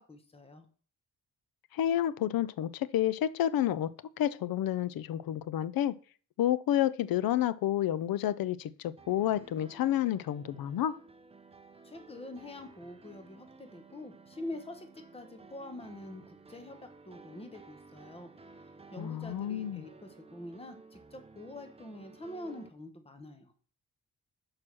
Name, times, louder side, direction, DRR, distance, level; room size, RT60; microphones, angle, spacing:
voice 1, 0.1-0.7 11.8-18.3 18.6-23.5, left 1 dB, 15° left, 6 dB, 1.0 m, -45 dB
voice 2, 1.7-3.9 4.2-5.9 6.4-8.7 9.1-10.9 19.0-19.8, left 11 dB, 90° left, 17 dB, 0.5 m, -29 dB
sound 1, 9.0-22.7, right 4 dB, 15° right, 0.6 m, -55 dB
6.2 x 4.8 x 5.9 m, 0.42 s
wide cardioid pair, 135°, 34 cm